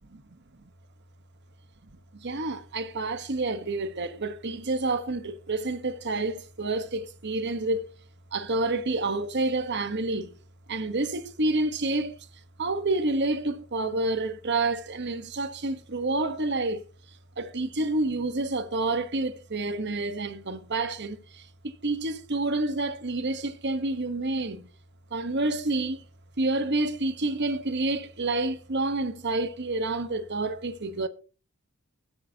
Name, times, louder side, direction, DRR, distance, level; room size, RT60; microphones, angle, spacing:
voice 1, 2.2-7.9 8.3-10.4 10.7-12.3 12.6-16.8 17.4-24.7 25.1-26.0 26.4-31.1, right 2 dB, 55° right, 1.2 m, -29 dB
19.5 x 8.8 x 2.9 m
head